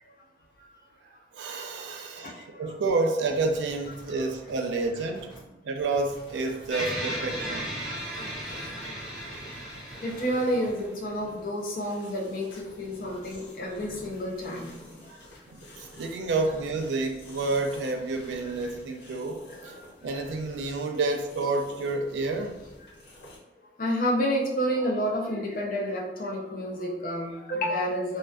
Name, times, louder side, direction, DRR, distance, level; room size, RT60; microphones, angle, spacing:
voice 1, 1.3-5.3 5.6-7.7 15.1-15.2 15.5-19.8 20.0-22.5, right 3 dB, 75° right, 4 dB, 0.3 m, -29 dB
sound 1, 3.3-5.5 5.9-10.9, right 1 dB, 25° left, 0.8 m, -50 dB
sound 2, 5.8-23.4, equal, 85° left, 0.8 m, -49 dB
sound 3, 6.7-11.1, right 1 dB, 5° right, 0.6 m, -35 dB
voice 2, 10.0-14.7 23.8-28.2, equal, 50° left, -2 dB, 0.5 m, -29 dB
2.4 x 2.3 x 2.2 m, 0.95 s
head